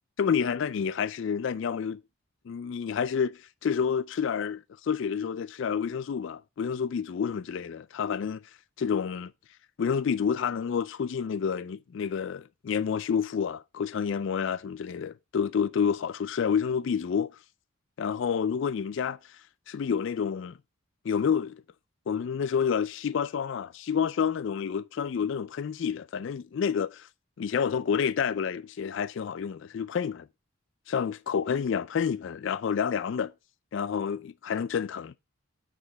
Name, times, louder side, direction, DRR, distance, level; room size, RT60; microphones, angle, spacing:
voice 1, 0.2-2.0 2.5-8.4 8.8-9.3 9.8-17.3 18.0-19.4 19.7-20.6 21.0-21.6 22.1-27.1 27.4-30.3 30.9-33.3 33.7-35.1, left 7 dB, 60° left, 0.3 m, -29 dB
8.6 x 5.0 x 4.5 m
head